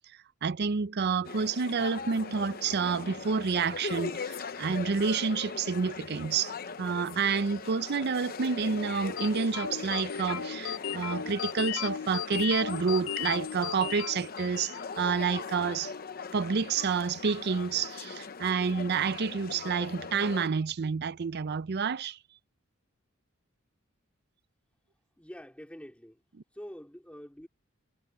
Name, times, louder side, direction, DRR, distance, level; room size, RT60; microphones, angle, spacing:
voice 1, 0.4-6.5 6.8-15.9 16.3-22.2, right 5 dB, 55° right, 0.5 m, -29 dB
sound 1, 1.2-20.5, left 5 dB, 45° left, 0.8 m, -40 dB
sound 2, 1.4-14.0, right 6 dB, 85° right, 5.4 m, -66 dB
sound 3, 9.2-14.9, left 8 dB, 80° left, 0.7 m, -36 dB
voice 2, 25.2-26.2 26.5-27.5, equal, 5° left, 3.7 m, -46 dB
head